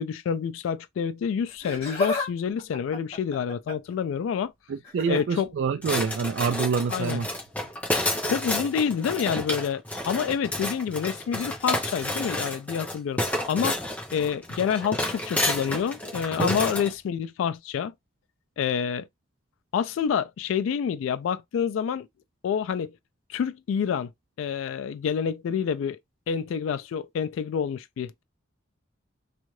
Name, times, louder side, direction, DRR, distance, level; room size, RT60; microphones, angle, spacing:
voice 1, 0.0-4.5 5.1-5.5 6.9-7.2 8.2-13.8 14.1-17.9 18.6-19.1 19.7-22.1 22.4-22.9 23.3-24.1 24.4-26.0 26.3-28.2, left 7 dB, 85° left, 0.3 m, -28 dB
Laughter, 1.5-2.3 2.6-3.9 4.8-5.2 6.5-6.7 7.6-7.7, left 3 dB, 35° left, 1.4 m, -31 dB
voice 2, 4.9-7.3 16.4-16.5, right 5 dB, 70° right, 0.3 m, -26 dB
sound 1, 5.8-16.9, left 1 dB, 5° left, 0.7 m, -30 dB
2.7 x 2.3 x 3.1 m
head